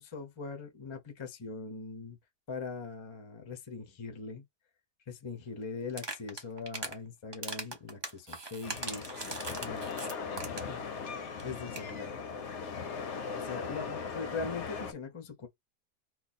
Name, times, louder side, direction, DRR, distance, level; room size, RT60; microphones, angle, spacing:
voice 1, 0.0-2.2 2.5-4.4 5.1-9.9 10.6-10.8 11.3-12.2 13.3-15.5, left 4 dB, 25° left, 0.6 m, -41 dB
sound 1, 5.9-7.0 7.3-10.8 11.1-11.2 11.4-11.5 11.7-11.9, right 3 dB, 30° right, 0.5 m, -40 dB
sound 2, 8.6-14.9, left 5 dB, 55° left, 0.9 m, -39 dB
voice 2, 9.2-10.9 12.4-13.3, left 8 dB, 80° left, 1.2 m, -50 dB
3.0 x 2.4 x 4.1 m
omnidirectional pair, 1.8 m